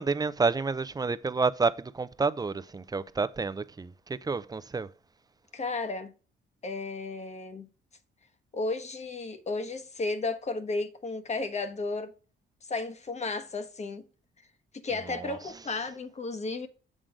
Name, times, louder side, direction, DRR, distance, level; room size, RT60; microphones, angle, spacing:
voice 1, 0.0-4.9 15.2-15.4, right 4 dB, 20° right, 0.5 m, -29 dB
voice 2, 5.5-6.1 6.6-7.7 8.5-12.1 12.6-14.1 14.4-14.5 14.8-16.7, left 3 dB, 35° left, 1.1 m, -33 dB
7.5 x 3.7 x 5.0 m
cardioid pair, 90°, 20 cm